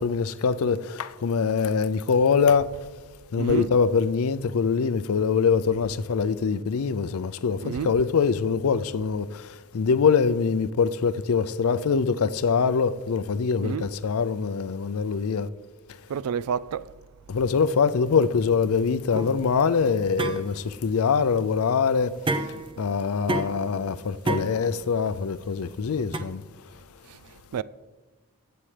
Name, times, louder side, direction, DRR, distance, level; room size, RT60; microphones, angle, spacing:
voice 1, 0.0-2.7 3.3-15.5 17.3-22.1 22.8-26.4, left 5 dB, 65° left, 0.4 m, -24 dB
voice 2, 3.4-3.7 7.6-7.9 13.6-13.9 16.1-16.8 27.5-27.6, right 7 dB, 75° right, 0.3 m, -29 dB
sound 1, 19.1-26.2, right 2 dB, 20° right, 0.5 m, -32 dB
14.5 x 8.7 x 3.3 m
head